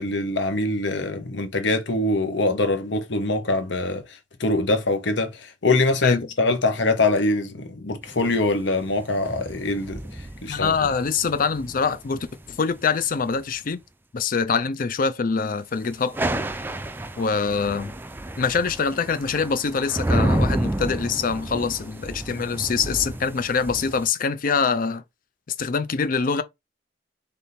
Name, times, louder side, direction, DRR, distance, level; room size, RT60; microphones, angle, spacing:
voice 1, 0.0-4.0 4.4-10.0 10.4-10.7, left 2 dB, 75° left, 0.9 m, -23 dB
sound 1, 8.0-13.5 16.0-24.1, right 1 dB, 10° right, 0.3 m, -30 dB
voice 2, 10.5-13.8 14.1-16.2 17.2-17.9 18.4-25.0 25.6-26.4, left 5 dB, 50° left, 0.5 m, -24 dB
3.5 x 2.6 x 4.2 m
head